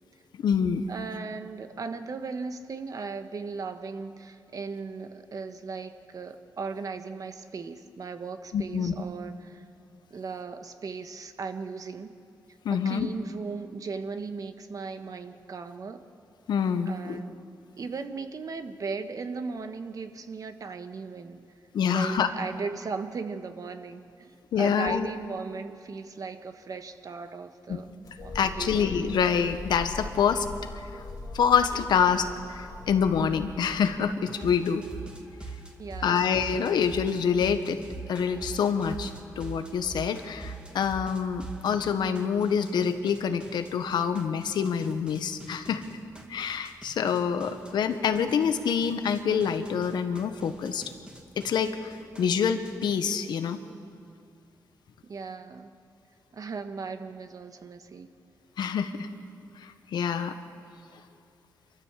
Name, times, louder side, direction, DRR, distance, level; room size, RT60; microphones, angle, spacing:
voice 1, 0.4-0.8 8.5-8.9 12.6-13.1 16.5-17.2 21.7-22.3 24.5-25.1 27.7-27.8 28.3-30.5 30.7-31.0 31.3-34.8 36.0-37.8 38.1-45.8 46.3-50.9 51.4-53.6 58.6-59.1 59.6-60.3, left 7 dB, 80° left, 9 dB, 1.2 m, -26 dB
voice 2, 0.9-9.6 10.1-12.1 12.7-16.0 16.8-17.3 17.8-21.4 21.9-27.9 28.2-28.8 35.8-36.3 55.1-55.7 56.3-58.1, right 4 dB, 55° right, 8 dB, 1.3 m, -37 dB
sound 1, 28.0-34.4, left 2 dB, 60° left, 2.7 m, -41 dB
sound 2, 34.3-52.9, right 3 dB, 15° right, 2.2 m, -44 dB
26.0 x 13.5 x 7.5 m, 2.5 s
cardioid pair, 70°, 7 cm